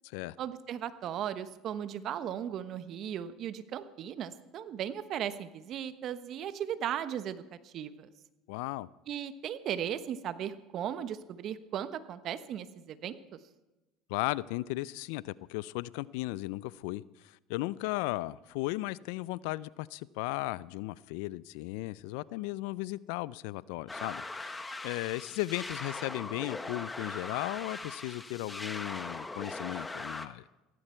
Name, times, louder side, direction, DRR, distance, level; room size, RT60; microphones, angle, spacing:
voice 1, 0.4-8.1 9.1-13.4, right 9 dB, 55° right, 12 dB, 1.1 m, -37 dB
voice 2, 8.5-8.9 14.1-30.4, left 19 dB, 75° left, 21 dB, 0.4 m, -36 dB
sound 1, 23.9-30.3, left 2 dB, 15° left, 1.1 m, -40 dB
16.5 x 15.0 x 4.5 m, 1.1 s
hypercardioid pair, 85°, 0 cm